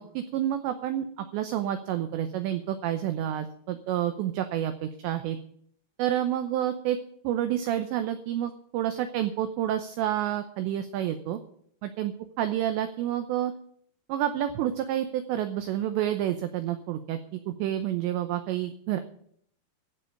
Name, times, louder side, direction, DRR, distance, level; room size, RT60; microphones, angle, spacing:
voice 1, 0.0-5.4 6.0-7.0 7.2-11.4 11.8-13.5 14.1-19.0, right 11 dB, 80° right, 8 dB, 2.7 m, -29 dB
15.5 x 5.5 x 9.4 m, 0.64 s
omnidirectional pair, 5.8 m